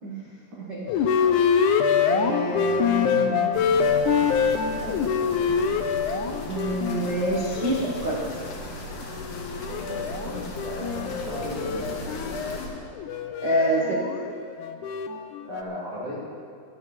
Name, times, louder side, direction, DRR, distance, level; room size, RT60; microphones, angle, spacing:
voice 1, 0.6-0.9 2.1-3.5 4.8-5.1 6.5-8.2 13.4-14.0, right 1 dB, 90° right, -4 dB, 0.9 m, -27 dB
sound 1, 0.9-8.6 9.0-15.6, left 6 dB, 90° left, 1.7 m, -25 dB
sound 2, 3.5-12.7, left 1 dB, 60° left, 3.2 m, -37 dB
voice 2, 9.7-12.2 15.4-16.2, equal, 65° right, -8 dB, 5.1 m, -36 dB
23.5 x 8.7 x 4.4 m, 2.2 s
omnidirectional pair, 4.6 m